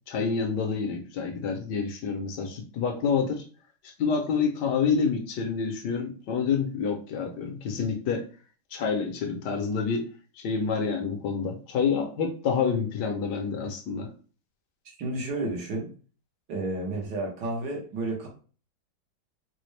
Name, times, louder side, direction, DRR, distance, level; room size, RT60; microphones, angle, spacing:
voice 1, 0.1-3.4 4.0-8.2 8.7-10.1 10.4-14.1, left 6 dB, 70° left, 3 dB, 1.2 m, -28 dB
voice 2, 15.0-15.9 16.5-18.3, right 2 dB, 75° right, -1 dB, 1.7 m, -31 dB
4.2 x 2.2 x 3.2 m, 0.39 s
omnidirectional pair, 1.9 m